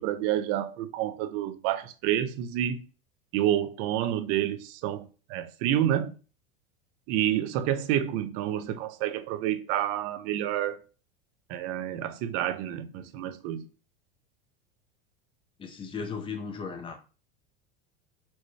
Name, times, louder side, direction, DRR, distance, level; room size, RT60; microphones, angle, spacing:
voice 1, 0.0-2.9 3.3-6.2 7.1-10.8 11.5-13.7, right 11 dB, 50° right, 0.5 m, -29 dB
voice 2, 15.6-17.0, left 5 dB, 20° left, 0.6 m, -36 dB
4.2 x 2.1 x 3.1 m
hypercardioid pair, 105°, 29 cm